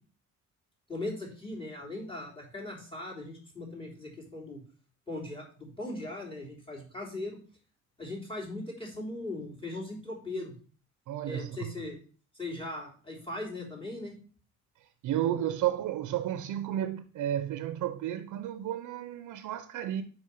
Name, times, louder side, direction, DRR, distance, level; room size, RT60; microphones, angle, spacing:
voice 1, 0.9-4.6 5.1-7.4 8.0-10.5 11.2-12.0 12.3-14.1, left 2 dB, 15° left, 3.3 m, -39 dB
voice 2, 11.1-11.7 15.0-20.0, right 11 dB, 80° right, 0.6 m, -32 dB
4.9 x 4.9 x 5.4 m
cardioid pair, 90°, 30 cm